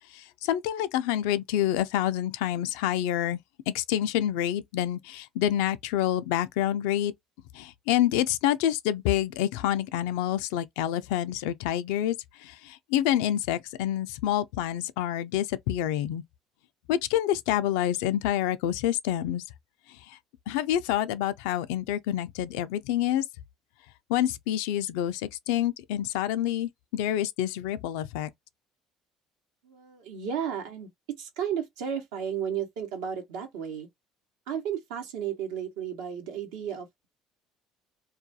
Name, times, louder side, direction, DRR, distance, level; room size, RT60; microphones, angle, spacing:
voice 1, 0.1-3.4 3.7-7.1 7.5-12.2 12.4-16.2 16.9-19.4 20.1-20.2 20.5-23.2 24.1-28.3, left 12 dB, 85° left, 0.3 m, -27 dB
voice 2, 29.6-30.9 31.2-33.9 34.5-37.1, right 8 dB, 85° right, 0.9 m, -33 dB
2.3 x 2.3 x 2.6 m
supercardioid pair, 75°, 0 cm